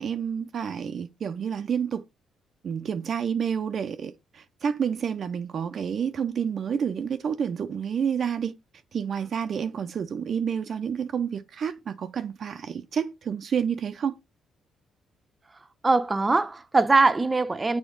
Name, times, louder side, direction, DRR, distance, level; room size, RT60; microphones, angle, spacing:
voice 1, 0.0-2.0 2.6-8.6 8.9-14.2, right 7 dB, 55° right, 0.5 m, -29 dB
voice 2, 15.8-17.8, right 3 dB, 25° right, 0.7 m, -21 dB
7.2 x 3.5 x 5.2 m
cardioid pair, 90°, 0 cm